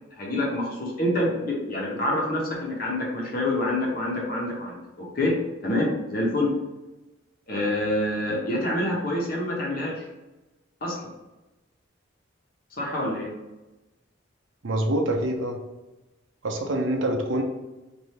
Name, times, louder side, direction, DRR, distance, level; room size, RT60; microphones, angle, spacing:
voice 1, 0.1-5.3 5.6-6.5 7.5-10.1 10.8-10.9 12.8-13.3, left 1 dB, 45° left, -3 dB, 1.0 m, -27 dB
voice 2, 14.6-15.6 16.4-17.4, right 1 dB, 70° right, 3 dB, 0.6 m, -25 dB
3.3 x 2.6 x 4.3 m, 1.1 s
head